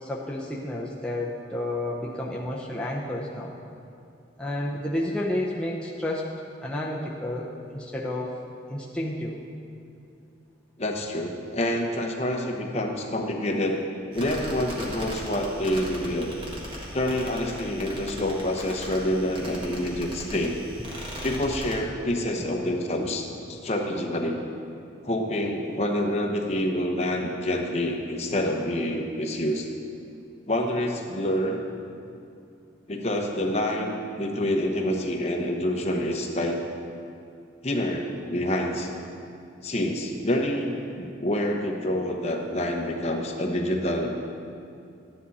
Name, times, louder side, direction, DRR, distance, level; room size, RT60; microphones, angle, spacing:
voice 1, 0.0-3.5 4.4-6.3 6.6-8.4 8.7-9.4 22.3-22.5 23.0-23.1, left 1 dB, 5° left, -4 dB, 0.7 m, -31 dB
voice 2, 10.8-13.8 14.1-16.4 16.9-20.6 21.2-23.2 23.5-24.4 25.0-29.7 30.5-31.6 32.9-36.6 37.6-38.9 39.6-44.2, left 1 dB, 35° left, 1 dB, 1.0 m, -27 dB
sound 1, 14.1-21.8, equal, 25° right, 1.7 m, -38 dB
13.0 x 10.0 x 4.2 m, 2.5 s
head